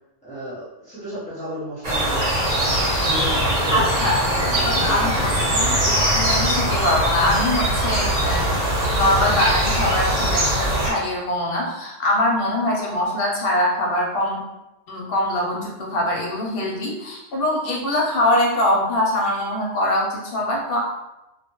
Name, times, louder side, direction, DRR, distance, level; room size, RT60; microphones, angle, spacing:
voice 1, 0.2-3.9 4.3-6.0, right 1 dB, 10° left, -11 dB, 0.4 m, -34 dB
sound 1, 1.8-10.9, right 1 dB, 90° right, 1.2 m, -21 dB
voice 2, 3.7-4.1 4.6-8.6 8.9-14.5 14.9-20.8, left 1 dB, 60° left, -2 dB, 0.7 m, -23 dB
2.2 x 2.1 x 2.9 m, 0.98 s
omnidirectional pair, 1.3 m